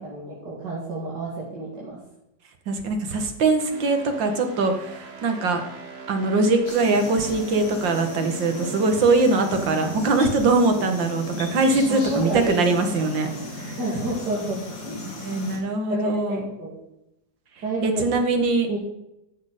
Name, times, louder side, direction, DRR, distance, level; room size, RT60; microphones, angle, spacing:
voice 1, 0.0-2.0 9.6-9.9 11.9-12.7 13.8-14.6 14.8-15.0 15.9-16.8 17.6-18.0 18.7-18.8, right 2 dB, 65° right, -6 dB, 3.2 m, -29 dB
voice 2, 2.7-5.6 6.1-13.3 13.6-13.8 15.2-16.5 17.8-18.7, right 3 dB, 85° right, 5 dB, 2.2 m, -22 dB
sound 1, 3.7-14.3, right 1 dB, 35° right, 1.6 m, -41 dB
sound 2, 6.7-15.6, left 2 dB, 85° left, 3.3 m, -37 dB
13.0 x 6.6 x 5.0 m, 0.88 s
omnidirectional pair, 2.0 m